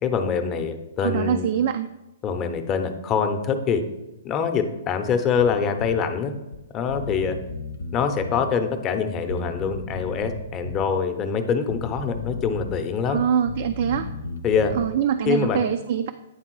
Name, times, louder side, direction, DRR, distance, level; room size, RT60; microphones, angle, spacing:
voice 1, 0.0-1.5 2.2-3.8 4.2-6.3 6.7-7.4 7.9-13.2 14.4-14.7 15.3-15.6, left 6 dB, 25° left, 6 dB, 0.7 m, -24 dB
voice 2, 1.0-1.9 13.1-14.1 14.7-16.1, right 9 dB, 55° right, 9 dB, 0.3 m, -24 dB
Bass guitar, 5.4-6.0 6.5-6.6 6.9-8.5 9.3-10.9 11.7-12.8 13.1-15.0, left 3 dB, 80° left, 0.7 m, -34 dB
8.9 x 3.7 x 4.6 m, 1.0 s
hypercardioid pair, 135°, 0 cm